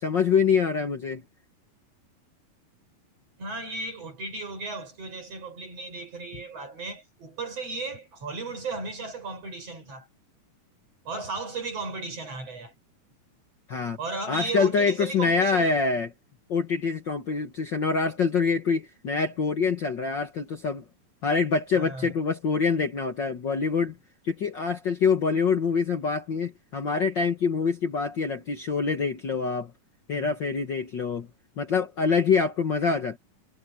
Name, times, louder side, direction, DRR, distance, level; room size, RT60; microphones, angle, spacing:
voice 1, 0.0-1.2 13.7-14.0 14.3-16.1 16.5-20.8 21.2-24.0 24.2-29.7 30.1-31.3 31.6-33.2, left 5 dB, 85° left, 1.0 m, -25 dB
voice 2, 3.4-10.1 11.1-12.7 14.0-15.8 21.7-22.2 30.2-30.4, right 3 dB, 40° right, 7.1 m, -35 dB
omnidirectional pair, 4.2 m